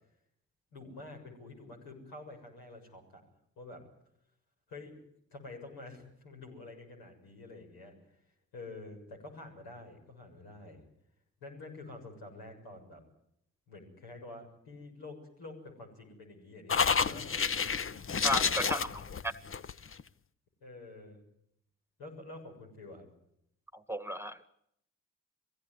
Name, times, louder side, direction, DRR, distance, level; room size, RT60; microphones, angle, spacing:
voice 1, 0.7-3.2 3.6-3.8 4.7-5.1 5.3-7.9 8.5-10.8 11.4-13.0 13.7-17.3 18.6-19.1 20.6-21.2 22.0-23.1, left 2 dB, 75° left, 1 dB, 7.0 m, -48 dB
sound 1, 16.7-20.0, left 6 dB, 35° left, 1.0 m, -30 dB
voice 2, 18.2-18.9 19.2-19.3 23.7-24.5, equal, 5° right, 13 dB, 1.6 m, -33 dB
22.5 x 16.5 x 9.6 m, 0.74 s
hypercardioid pair, 45°, 37 cm